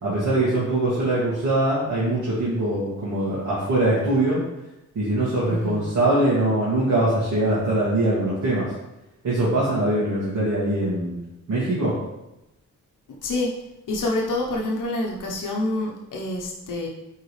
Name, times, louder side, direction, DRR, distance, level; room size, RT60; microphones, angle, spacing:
voice 1, 0.0-4.4 4.9-8.7 9.2-11.2 11.5-12.0, right 1 dB, 65° right, -9 dB, 2.2 m, -22 dB
voice 2, 5.5-5.8 13.2-13.6 13.9-16.9, left 2 dB, 80° left, -2 dB, 1.1 m, -27 dB
9.0 x 3.8 x 3.3 m, 0.93 s
wide cardioid pair, 165°, 31 cm